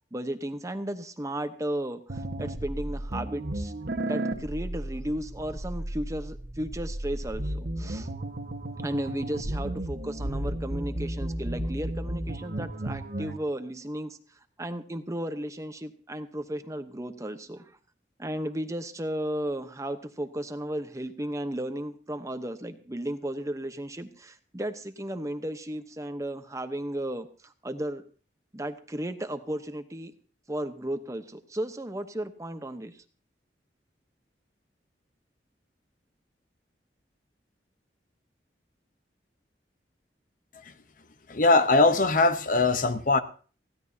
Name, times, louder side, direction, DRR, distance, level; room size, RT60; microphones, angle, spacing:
voice 1, 0.1-3.7 4.1-8.1 8.8-14.2 14.6-17.7 18.2-28.0 28.5-30.1 30.5-32.9, right 1 dB, 20° right, 9 dB, 0.9 m, -34 dB
sound 1, 2.1-13.4, right 1 dB, 55° right, 1.4 m, -33 dB
voice 2, 41.3-43.2, left 3 dB, 50° left, 10 dB, 0.9 m, -21 dB
20.5 x 16.0 x 2.8 m, 0.39 s
head